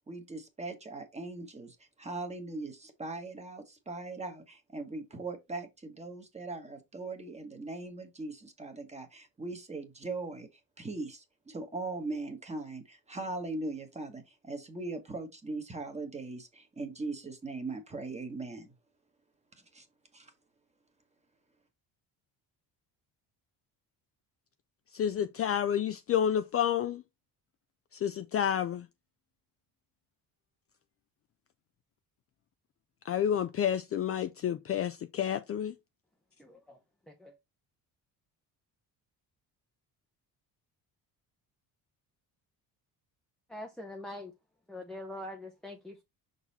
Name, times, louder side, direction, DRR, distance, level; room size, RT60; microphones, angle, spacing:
voice 1, 0.1-10.5 10.8-18.7 19.7-19.9 20.1-20.3, right 3 dB, 15° right, 1.3 m, -40 dB
voice 2, 24.9-27.0 27.9-28.9 33.0-35.7, left 9 dB, 40° left, 0.4 m, -30 dB
voice 3, 36.4-36.8 37.1-37.4 43.5-44.3 44.7-46.0, left 1 dB, ahead, 0.7 m, -43 dB
6.0 x 4.1 x 4.0 m
cardioid pair, 145°, 39 cm